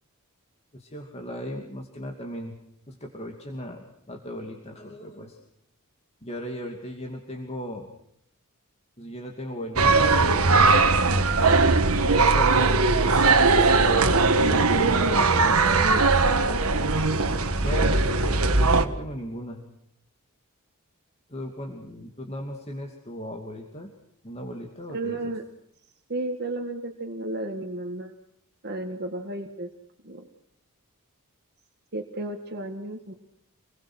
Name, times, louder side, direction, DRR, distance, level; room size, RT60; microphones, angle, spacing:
voice 1, 0.7-2.6 2.9-5.4 6.2-7.9 9.0-11.5 12.2-13.4 14.0-14.5 17.6-19.6 21.3-23.9 24.2-25.3, left 1 dB, 30° left, 2 dB, 2.6 m, -37 dB
sound 1, 9.8-18.8, right 3 dB, 70° right, 1.7 m, -20 dB
voice 2, 14.4-16.0 16.4-16.6 24.9-25.4 26.1-28.1 28.6-29.7 30.0-30.2 31.9-33.1, right 1 dB, 50° right, 4 dB, 1.8 m, -32 dB
27.5 x 21.0 x 6.3 m, 0.74 s
head